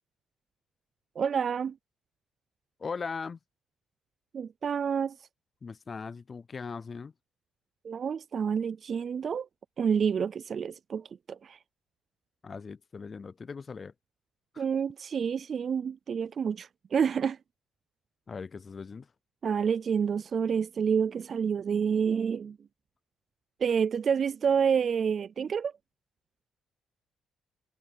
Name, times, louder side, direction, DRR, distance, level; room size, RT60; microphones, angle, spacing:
voice 1, 1.2-1.8 4.3-5.2 7.8-9.5 9.8-11.6 14.6-17.4 19.4-22.6 23.6-25.7, right 7 dB, 50° right, 0.3 m, -28 dB
voice 2, 2.8-3.4 5.6-7.1 12.4-13.9 14.5-14.6 18.3-19.1, left 5 dB, 35° left, 0.4 m, -39 dB
cardioid pair, 90°, 0 cm